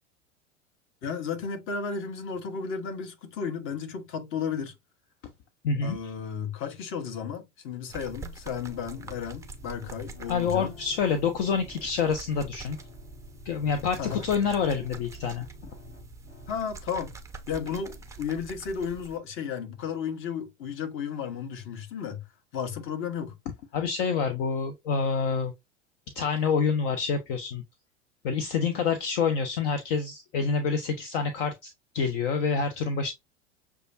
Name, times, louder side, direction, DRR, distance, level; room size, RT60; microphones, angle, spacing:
voice 1, 1.0-4.7 5.8-10.7 14.0-14.2 16.5-17.1 17.5-22.2 22.5-23.4, left 6 dB, 35° left, 1.1 m, -33 dB
voice 2, 5.6-6.0 10.3-12.8 13.4-15.5 23.7-25.5 26.1-27.6 28.2-33.1, left 5 dB, 50° left, 0.8 m, -27 dB
sound 1, 7.9-19.2, right 4 dB, 10° right, 0.5 m, -45 dB
sound 2, 8.6-16.6, left 4 dB, 70° left, 1.9 m, -51 dB
6.6 x 2.3 x 2.6 m
figure-of-eight pair, 85°, 37 cm